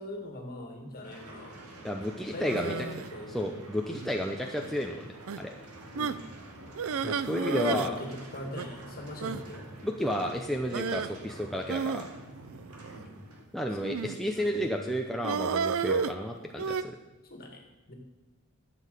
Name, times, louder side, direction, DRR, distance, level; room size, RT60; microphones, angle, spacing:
voice 1, 0.0-1.6 2.3-3.5 5.9-6.3 7.4-9.7 12.9-13.1 13.7-13.8 14.3-14.8 17.2-17.9, left 1 dB, 45° left, 3 dB, 2.0 m, -41 dB
sound 1, 1.0-13.4, right 1 dB, 85° right, 2.2 m, -48 dB
voice 2, 1.8-2.7 3.3-5.5 7.0-7.9 9.8-12.1 13.5-17.0, equal, ahead, 1 dB, 0.7 m, -32 dB
sound 2, 2.4-3.1 3.9-4.2 4.6-4.7 5.3-5.4 5.9-6.3 6.8-7.9 8.2-8.3 8.5-8.7 9.2-9.4 10.7-11.1 11.7-13.0 13.8-14.3 15.2-16.8, right 6 dB, 65° right, 0.4 m, -32 dB
11.5 x 7.6 x 6.7 m, 1.1 s
head